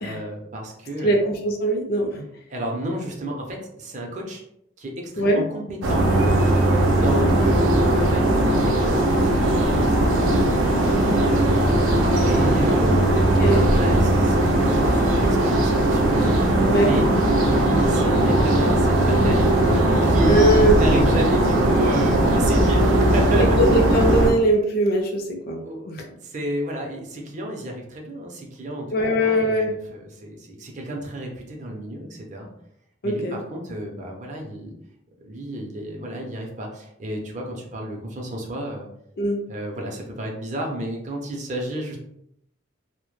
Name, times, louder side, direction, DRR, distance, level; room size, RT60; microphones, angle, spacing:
voice 1, 0.0-1.2 2.5-4.4 4.8-6.0 6.8-11.0 11.5-13.0 13.4-16.1 16.7-17.1 17.4-19.6 20.0-23.4 25.6-32.5 33.0-34.7 35.2-38.9 39.5-42.0, right 1 dB, 40° right, 0 dB, 0.5 m, -31 dB
voice 2, 1.0-2.2 5.2-5.4 13.4-13.7 16.6-16.9 20.3-20.8 23.3-25.6 25.9-26.0 28.9-29.7 33.0-33.4 39.2-39.4, right 1 dB, 50° left, 2 dB, 0.4 m, -21 dB
sound 1, 5.8-24.3, right 1 dB, 85° right, 0.5 m, -19 dB
2.1 x 2.1 x 3.1 m, 0.75 s
head